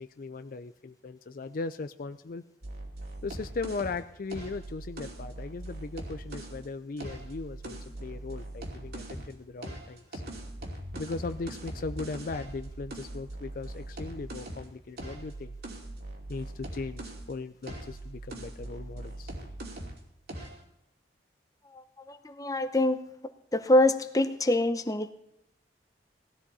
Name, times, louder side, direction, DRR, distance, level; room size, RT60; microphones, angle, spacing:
voice 1, 0.0-2.5 3.2-10.2 10.9-15.6 16.3-19.3, left 3 dB, 55° left, 10 dB, 0.5 m, -38 dB
sound 1, 2.6-6.6 7.0-9.3 9.6-17.3 17.6-20.0 20.3-20.6, right 1 dB, 60° right, 2.7 m, -41 dB
voice 2, 22.1-23.0 23.5-25.1, left 1 dB, 20° left, 9 dB, 0.8 m, -25 dB
17.5 x 12.5 x 4.2 m, 0.87 s
head